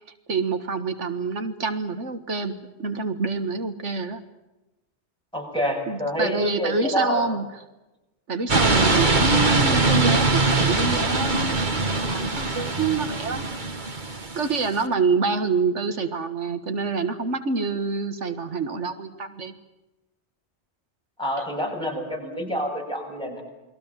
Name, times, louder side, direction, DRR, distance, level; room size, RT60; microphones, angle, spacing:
voice 1, 0.3-4.2 5.9-7.5 8.3-13.5 14.4-19.6, right 4 dB, 85° right, 8 dB, 2.0 m, -27 dB
voice 2, 5.3-7.2 21.2-23.4, equal, 5° left, 0 dB, 7.8 m, -27 dB
sound 1, 8.5-14.8, right 3 dB, 40° right, 2.1 m, -22 dB
29.0 x 21.5 x 7.4 m, 1.0 s
omnidirectional pair, 1.2 m